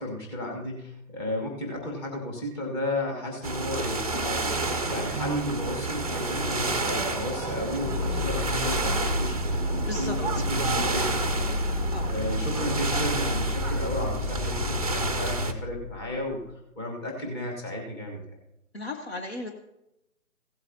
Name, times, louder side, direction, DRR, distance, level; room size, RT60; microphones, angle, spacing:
voice 1, 0.0-4.5 4.9-16.4 16.8-18.4, left 1 dB, 20° left, 0 dB, 1.6 m, -34 dB
sound 1, 3.4-15.5, right 3 dB, 25° right, 0.6 m, -30 dB
sound 2, 7.8-16.5, left 2 dB, 85° left, 0.9 m, -31 dB
voice 2, 9.8-10.4 11.9-12.1 18.7-19.5, left 2 dB, 45° left, 3 dB, 1.0 m, -35 dB
16.5 x 8.0 x 2.8 m, 0.88 s
figure-of-eight pair, 145°, 43 cm